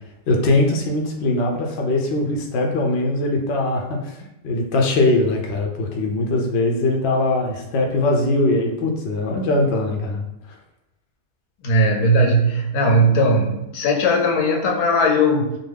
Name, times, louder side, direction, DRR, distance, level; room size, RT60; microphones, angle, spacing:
voice 1, 0.3-4.2 4.4-10.3, left 2 dB, 65° left, 1 dB, 0.7 m, -21 dB
voice 2, 11.6-15.5, equal, 85° left, 1 dB, 1.1 m, -18 dB
2.5 x 2.2 x 3.2 m, 0.89 s
omnidirectional pair, 1.6 m